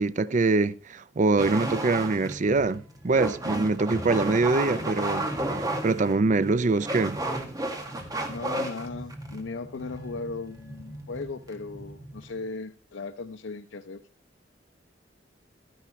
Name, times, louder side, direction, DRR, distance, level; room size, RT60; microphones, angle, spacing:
voice 1, 0.0-5.3 5.8-7.2, right 3 dB, 40° right, 0.5 m, -24 dB
sound 1, 1.4-12.4, right 1 dB, 20° right, 1.7 m, -33 dB
voice 2, 8.3-14.0, left 3 dB, 85° left, 0.5 m, -37 dB
13.0 x 10.0 x 3.1 m
head